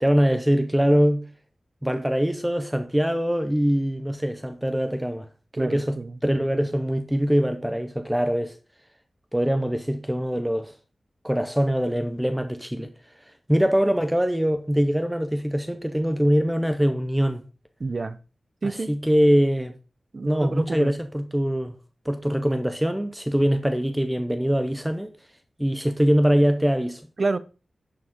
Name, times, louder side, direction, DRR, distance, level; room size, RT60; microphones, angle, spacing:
voice 1, 0.0-1.2 1.8-5.3 5.5-8.6 9.3-10.8 11.2-12.9 13.5-17.4 18.6-19.7 20.3-21.7 22.1-25.1 25.6-27.0, equal, 5° right, 0.6 m, -23 dB
voice 2, 5.6-6.2 17.8-18.2 18.6-18.9 20.1-21.0 27.2-27.4, right 3 dB, 45° right, 0.6 m, -28 dB
10.5 x 4.7 x 3.7 m
wide cardioid pair, 105°, 0 cm